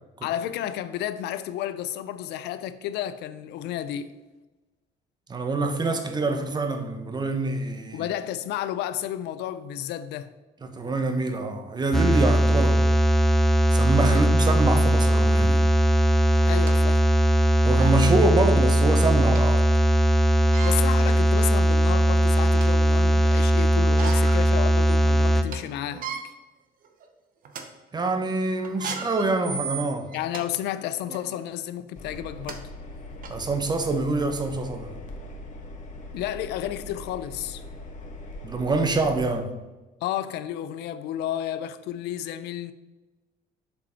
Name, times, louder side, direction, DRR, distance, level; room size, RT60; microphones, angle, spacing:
voice 1, 0.2-4.1 7.9-10.3 14.1-14.2 16.4-17.1 20.6-26.1 30.1-32.7 36.1-37.6 40.0-42.7, left 11 dB, 80° left, 0.5 m, -32 dB
voice 2, 5.3-8.0 10.6-12.9 13.7-15.6 17.6-19.7 27.9-30.1 33.3-35.0 38.4-39.5, right 2 dB, 25° right, 1.0 m, -25 dB
sound 1, 11.9-25.4, right 1 dB, ahead, 0.6 m, -19 dB
sound 2, 15.6-15.7 16.3-16.8 17.4-17.5 17.8-18.0 19.3-19.4 20.4-20.8 21.6-21.7 22.1-22.8 23.8-24.4 24.8-24.9 25.3-25.6 25.9-26.2 26.8-27.0 27.4-27.6 28.6-30.4 31.0-31.2 32.1-32.2 32.5-32.6 33.2-33.3, right 6 dB, 55° right, 1.1 m, -36 dB
Engine, 31.9-39.2, left 1 dB, 45° left, 1.3 m, -41 dB
7.2 x 5.1 x 4.4 m
cardioid pair, 110°, 17 cm